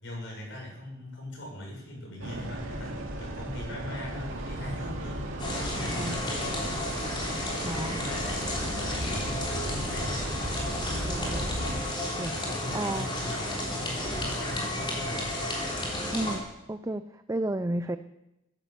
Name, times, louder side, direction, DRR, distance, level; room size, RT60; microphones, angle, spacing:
voice 1, 0.0-6.9 7.6-10.4 12.4-15.3, left 1 dB, 60° left, -1 dB, 6.8 m, -41 dB
sound 1, 2.2-11.8, right 1 dB, 85° right, 2.5 m, -36 dB
sound 2, 4.0-16.1, right 3 dB, 40° right, 4.9 m, -49 dB
sound 3, 5.4-16.4, left 1 dB, 25° left, 4.1 m, -32 dB
voice 2, 5.8-6.2 7.6-8.0 11.0-11.5 12.2-12.4 12.7-13.1 16.1-16.4 16.7-18.0, right 1 dB, 15° right, 10 dB, 0.4 m, -32 dB
15.5 x 10.5 x 7.5 m, 0.91 s
head